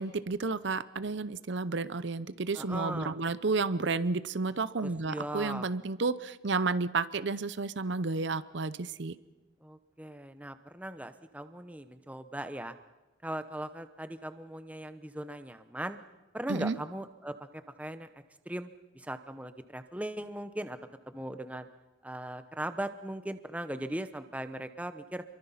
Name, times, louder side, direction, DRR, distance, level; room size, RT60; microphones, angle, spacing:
voice 1, 0.0-9.1 16.5-16.8, right 3 dB, 60° right, 15 dB, 0.7 m, -31 dB
voice 2, 2.5-3.2 4.8-5.7 9.6-12.7 13.2-16.0 16.3-17.3 17.8-18.1 18.5-20.8 21.1-21.7 22.0-25.2, right 1 dB, 5° right, 10 dB, 0.8 m, -39 dB
28.5 x 23.0 x 5.7 m, 1.1 s
head